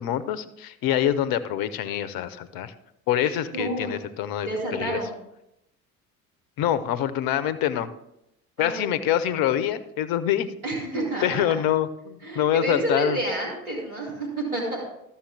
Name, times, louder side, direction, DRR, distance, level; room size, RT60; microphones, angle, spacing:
voice 1, 0.0-2.7 3.1-5.0 6.6-7.9 8.6-10.5 10.9-13.2, left 11 dB, 55° left, 12 dB, 0.8 m, -25 dB
voice 2, 3.2-3.9 4.4-5.1 8.6-8.9 10.6-11.5 12.2-14.8, right 1 dB, 85° right, -2 dB, 2.5 m, -29 dB
13.0 x 7.1 x 3.4 m, 0.82 s
figure-of-eight pair, 55°, 42 cm